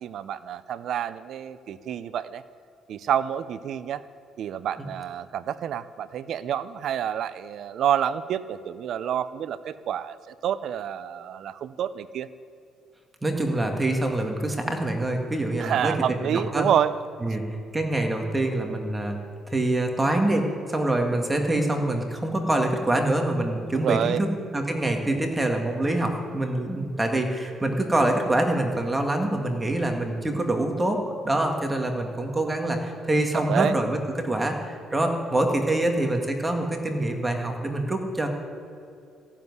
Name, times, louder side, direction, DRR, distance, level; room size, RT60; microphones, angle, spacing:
voice 1, 0.0-2.4 2.9-4.0 4.4-12.3 15.6-17.0 17.3-17.4 23.7-24.2 33.3-33.8, right 9 dB, 65° right, 15 dB, 0.5 m, -28 dB
voice 2, 13.2-16.0 16.2-16.7 17.2-19.2 19.5-24.3 24.5-38.3, right 1 dB, 15° right, 3 dB, 1.9 m, -25 dB
15.0 x 7.3 x 9.6 m, 2.5 s
cardioid pair, 100°, 0 cm